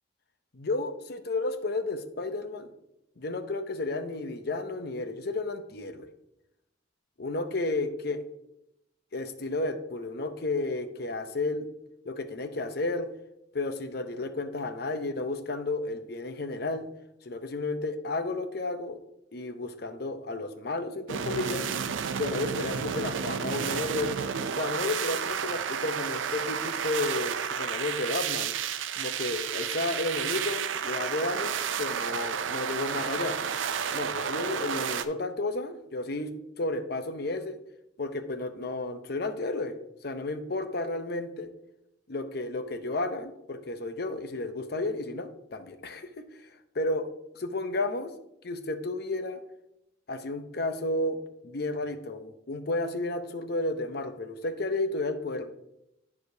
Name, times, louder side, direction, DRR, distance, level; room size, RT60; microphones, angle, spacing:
voice 1, 0.5-2.7 3.2-6.1 7.2-8.2 9.1-11.6 12.0-13.1 13.5-16.9 17.2-19.0 19.3-21.7 22.2-24.1 24.5-28.5 28.9-33.4 33.9-37.6 38.0-39.8 40.0-41.5 42.1-47.1 47.3-48.1 48.4-49.4 50.1-55.5, left 2 dB, 55° left, 9 dB, 0.7 m, -32 dB
sound 1, 21.1-35.0, right 7 dB, 80° right, 0.5 m, -31 dB
14.5 x 4.9 x 2.7 m, 0.85 s
head